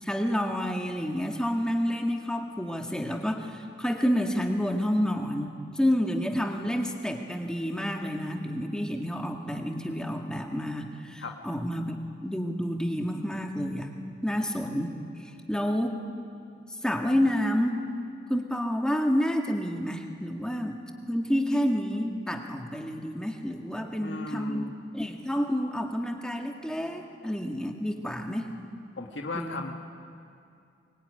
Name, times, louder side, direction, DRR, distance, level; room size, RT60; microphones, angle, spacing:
voice 1, 0.0-13.9 14.2-14.9 15.5-16.0 16.8-17.8 18.3-24.6 24.9-28.5 29.3-29.6, equal, 5° left, 3 dB, 2.0 m, -29 dB
voice 2, 23.8-24.7 29.0-29.7, left 2 dB, 85° left, 2 dB, 1.8 m, -36 dB
23.0 x 22.5 x 10.0 m, 2.5 s
head